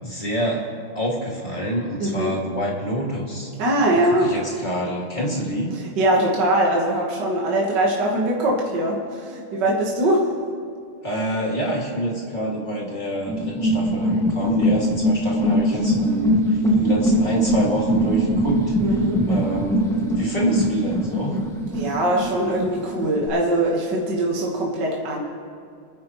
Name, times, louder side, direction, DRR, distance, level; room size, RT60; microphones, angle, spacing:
voice 1, 0.0-0.6 0.9-3.5 4.2-5.7 11.0-18.8 19.3-21.3, right 1 dB, 20° left, -3 dB, 2.3 m, -26 dB
voice 2, 2.0-2.3 3.6-4.3 6.0-10.3 18.8-19.3 21.7-25.2, right 1 dB, 55° right, -2 dB, 2.0 m, -22 dB
sound 1, 13.3-23.3, equal, ahead, 1.5 m, -22 dB
29.0 x 10.5 x 3.1 m, 2.3 s
omnidirectional pair, 2.3 m